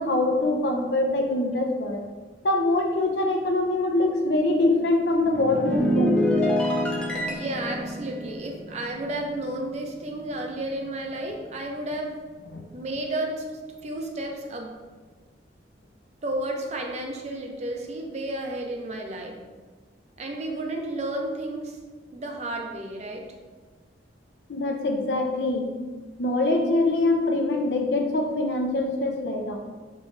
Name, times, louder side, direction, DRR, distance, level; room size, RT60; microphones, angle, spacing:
voice 1, 0.0-2.0 2.4-6.2 12.5-12.6 24.5-25.7 26.2-29.6, left 2 dB, 70° left, 3 dB, 0.5 m, -24 dB
sound 1, 5.1-9.7 10.0-10.3, left 1 dB, 5° left, 0.5 m, -27 dB
voice 2, 7.3-12.2 12.7-13.4 13.8-14.7 16.2-19.4 20.2-21.8 22.1-23.2, right 1 dB, 40° right, 2 dB, 0.5 m, -32 dB
5.3 x 3.0 x 2.5 m, 1.4 s
head